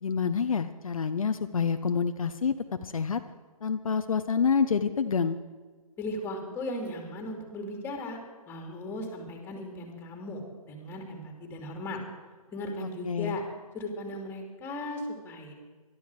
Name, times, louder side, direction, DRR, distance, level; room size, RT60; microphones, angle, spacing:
voice 1, 0.0-2.5 2.8-3.2 3.6-5.4 12.8-13.4, left 6 dB, 65° left, 8 dB, 0.8 m, -27 dB
voice 2, 6.0-8.2 8.5-10.4 10.7-12.0 12.5-13.4 13.7-15.5, left 1 dB, 10° left, 3 dB, 2.8 m, -37 dB
20.5 x 13.0 x 4.8 m, 1.4 s
figure-of-eight pair, 140°, 19 cm